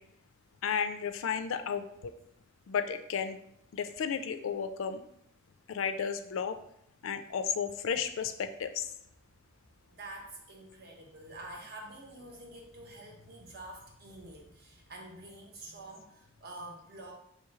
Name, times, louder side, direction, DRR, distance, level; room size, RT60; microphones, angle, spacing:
voice 1, 0.6-2.1 2.7-3.4 3.7-5.0 5.7-6.6 7.0-8.8, left 7 dB, 80° left, 9 dB, 0.4 m, -33 dB
voice 2, 9.9-17.1, right 2 dB, 50° right, 0 dB, 0.9 m, -47 dB
3.1 x 3.0 x 4.6 m, 0.75 s
head